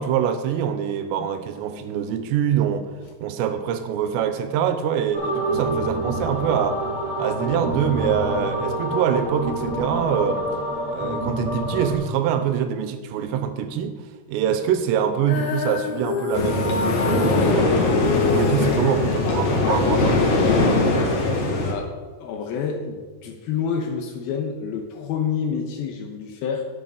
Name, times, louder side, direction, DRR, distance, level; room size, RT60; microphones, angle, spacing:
voice 1, 0.0-2.9 3.2-6.8 7.2-10.5 10.9-14.0 14.3-18.0 18.3-20.2, right 9 dB, 85° right, 9 dB, 2.9 m, -24 dB
sound 1, 5.1-11.9, right 1 dB, 15° right, 1.8 m, -27 dB
Female singing, 15.3-21.5, left 5 dB, 90° left, 3.5 m, -28 dB
sound 2, 16.3-21.7, left 3 dB, 55° left, 2.1 m, -21 dB
voice 2, 22.2-26.6, left 6 dB, 75° left, 3 dB, 2.5 m, -28 dB
10.5 x 8.3 x 5.3 m, 1.4 s
omnidirectional pair, 5.1 m